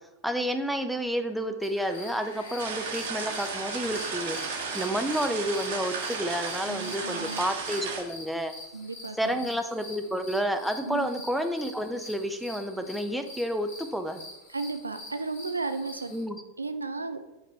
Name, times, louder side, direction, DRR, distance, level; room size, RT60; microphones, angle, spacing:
voice 1, 0.2-8.5 9.2-14.2 16.1-16.4, equal, ahead, 7 dB, 0.5 m, -30 dB
sound 1, 1.6-16.2, left 2 dB, 55° left, 2.2 m, -46 dB
sound 2, 1.7-7.6, left 2 dB, 70° left, 1.1 m, -47 dB
sound 3, 2.6-8.0, right 5 dB, 55° right, 1.2 m, -34 dB
voice 2, 6.7-7.4 8.7-9.5 10.9-11.1 14.5-16.1 16.6-17.2, right 3 dB, 80° right, 9 dB, 0.4 m, -34 dB
5.4 x 5.0 x 4.3 m, 0.99 s
figure-of-eight pair, 90°, 0 cm